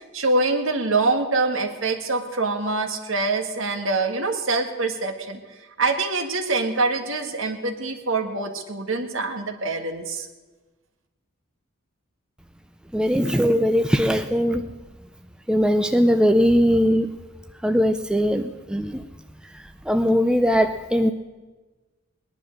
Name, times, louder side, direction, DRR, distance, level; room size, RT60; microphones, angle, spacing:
voice 1, 0.0-5.4 5.8-10.3, right 3 dB, 60° right, 6 dB, 1.6 m, -25 dB
voice 2, 12.9-14.7 15.5-17.1 17.6-19.1 19.9-21.1, equal, 5° right, 7 dB, 0.5 m, -20 dB
19.0 x 10.5 x 6.5 m, 1.2 s
head